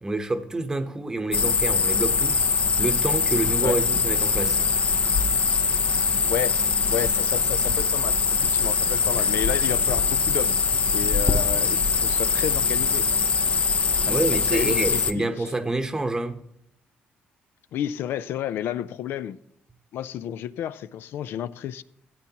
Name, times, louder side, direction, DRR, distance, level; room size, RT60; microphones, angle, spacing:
voice 1, 0.0-2.4 2.8-4.7 14.0-16.4, right 2 dB, 15° right, 0.9 m, -27 dB
sound 1, 1.3-15.1, left 5 dB, 30° left, 0.6 m, -22 dB
voice 2, 6.9-10.6 10.9-13.1 14.1-15.5 17.7-19.4 19.9-21.8, left 10 dB, 80° left, 0.5 m, -31 dB
14.0 x 8.6 x 2.9 m
cardioid pair, 120°, 4 cm